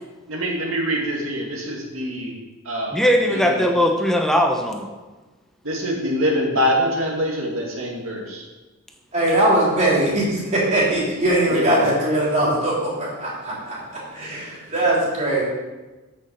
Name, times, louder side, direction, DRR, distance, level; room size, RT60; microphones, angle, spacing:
voice 1, 0.3-2.3 2.7-3.6 5.6-8.4 11.5-11.9, equal, 70° right, -1 dB, 2.2 m, -24 dB
voice 2, 2.9-4.9, equal, ahead, 2 dB, 0.7 m, -19 dB
voice 3, 9.1-13.8 14.1-15.4, right 1 dB, 30° right, -6 dB, 3.7 m, -20 dB
8.1 x 6.8 x 6.9 m, 1.2 s
head